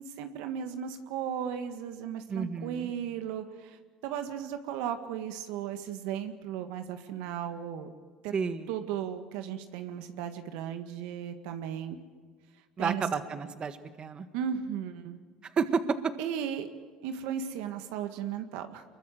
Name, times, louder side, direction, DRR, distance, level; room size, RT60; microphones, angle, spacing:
voice 1, 0.0-7.9 8.2-8.3 8.7-12.0 12.8-13.1 14.3-15.2 16.2-16.7 17.0-18.8, right 9 dB, 80° right, 8 dB, 1.7 m, -36 dB
voice 2, 2.3-2.9 8.3-8.7 12.8-14.3 15.6-16.1, right 5 dB, 35° right, 10 dB, 1.6 m, -30 dB
24.5 x 22.0 x 7.7 m, 1.5 s
supercardioid pair, 85°, 3 cm